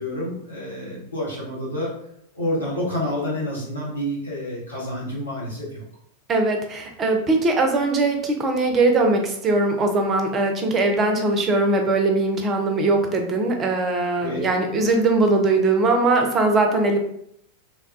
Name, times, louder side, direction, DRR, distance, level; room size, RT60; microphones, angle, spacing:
voice 1, 0.0-1.9 2.3-5.8 14.2-14.4, left 1 dB, 80° left, -5 dB, 1.2 m, -28 dB
voice 2, 6.3-17.0, right 2 dB, 25° right, 4 dB, 0.6 m, -20 dB
3.5 x 2.2 x 2.5 m, 0.72 s
figure-of-eight pair, 90°, 0 cm